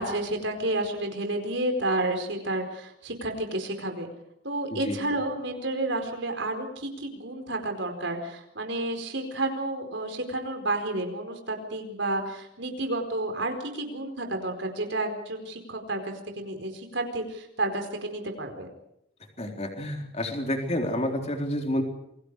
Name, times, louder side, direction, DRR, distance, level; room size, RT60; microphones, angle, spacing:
voice 1, 0.0-4.1 4.4-18.7, right 2 dB, 65° right, 5 dB, 4.6 m, -31 dB
voice 2, 19.4-21.8, left 1 dB, 30° left, 3 dB, 3.9 m, -29 dB
28.5 x 23.5 x 4.9 m, 0.79 s
head